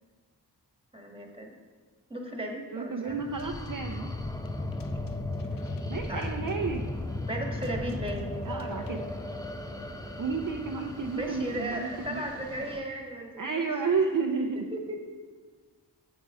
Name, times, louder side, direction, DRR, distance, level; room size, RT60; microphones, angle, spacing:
voice 1, 0.9-1.5 2.1-3.2 6.1-6.3 7.3-8.3 11.1-13.7 14.7-15.0, right 1 dB, 10° right, 1 dB, 1.5 m, -36 dB
voice 2, 2.7-4.1 5.9-6.8 8.4-9.0 10.2-12.2 13.4-14.7, right 4 dB, 50° right, 3 dB, 0.6 m, -31 dB
sound 1, 3.1-12.8, left 1 dB, 10° left, 0.6 m, -36 dB
sound 2, 3.4-9.0, left 6 dB, 55° left, 0.5 m, -48 dB
sound 3, 6.0-12.8, right 5 dB, 85° right, 0.7 m, -51 dB
8.9 x 7.7 x 3.8 m, 1.5 s
wide cardioid pair, 65°, 42 cm